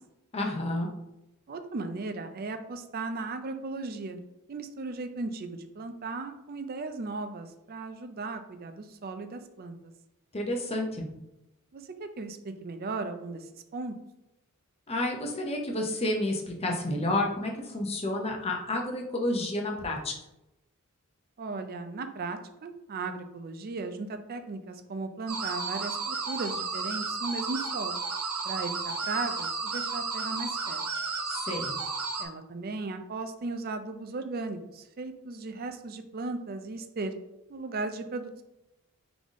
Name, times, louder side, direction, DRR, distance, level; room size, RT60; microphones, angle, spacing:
voice 1, 0.3-0.9 10.3-11.0 14.9-20.1 31.3-31.7, left 1 dB, 30° left, 1 dB, 0.8 m, -30 dB
voice 2, 1.5-4.2 4.5-9.9 11.7-13.5 13.7-14.0 21.4-28.0 28.4-30.8 32.2-37.1 37.5-38.3, right 3 dB, 45° right, 7 dB, 0.5 m, -36 dB
sound 1, 25.3-32.3, right 4 dB, 80° right, 0.8 m, -33 dB
3.9 x 3.5 x 3.6 m, 0.91 s
head